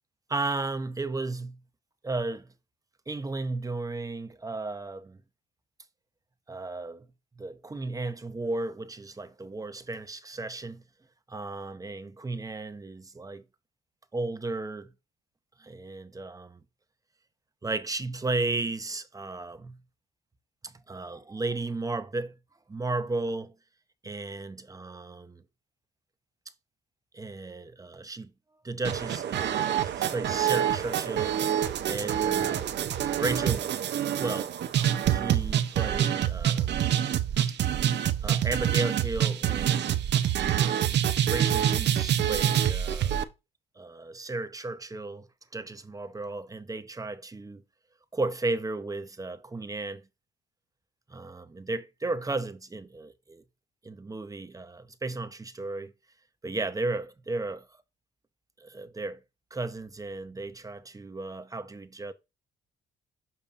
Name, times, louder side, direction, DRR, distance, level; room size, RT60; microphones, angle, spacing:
voice 1, 0.3-1.6 2.0-2.5 3.1-5.2 6.5-7.1 7.4-10.8 11.3-13.4 14.1-14.9 15.6-16.6 17.6-19.8 20.6-22.4 22.7-23.6 24.0-25.4 27.1-28.3 28.6-31.5 31.8-32.7 33.2-33.7 34.2-34.5 35.1-36.8 38.2-39.9 40.5-41.0 41.2-43.2 43.8-45.3 45.5-47.6 48.1-50.1 51.1-53.4 53.8-55.9 56.4-57.7 58.6-59.2 59.5-62.1, right 2 dB, 15° right, 0.7 m, -34 dB
sound 1, 28.8-43.2, right 10 dB, 60° right, 0.6 m, -26 dB
7.0 x 5.4 x 2.5 m
cardioid pair, 90°, 20 cm